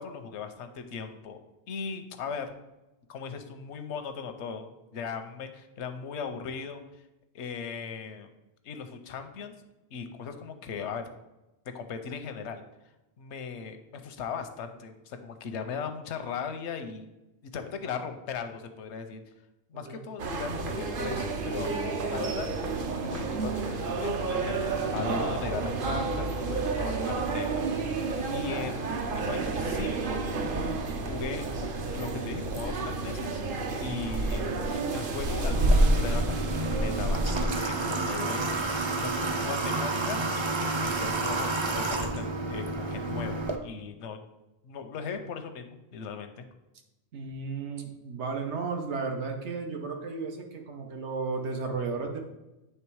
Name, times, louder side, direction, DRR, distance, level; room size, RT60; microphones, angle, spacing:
voice 1, 0.0-1.4 1.7-2.5 3.1-6.8 7.3-8.3 8.6-9.5 9.9-11.1 11.7-12.6 13.2-17.1 17.5-19.2 19.7-21.7 22.1-30.2 31.0-33.4 33.8-34.5 34.7-36.4 36.7-38.5 39.0-40.3 40.7-44.2 44.6-46.4, left 6 dB, 85° left, 7 dB, 1.0 m, -38 dB
sound 1, 20.2-37.5, right 2 dB, 55° right, 0.8 m, -29 dB
Water / Water tap faucet, 35.5-43.6, right 2 dB, 40° right, 0.4 m, -30 dB
voice 2, 47.1-52.2, right 4 dB, 80° right, 3 dB, 1.2 m, -34 dB
8.6 x 3.3 x 4.6 m, 0.99 s
omnidirectional pair, 1.1 m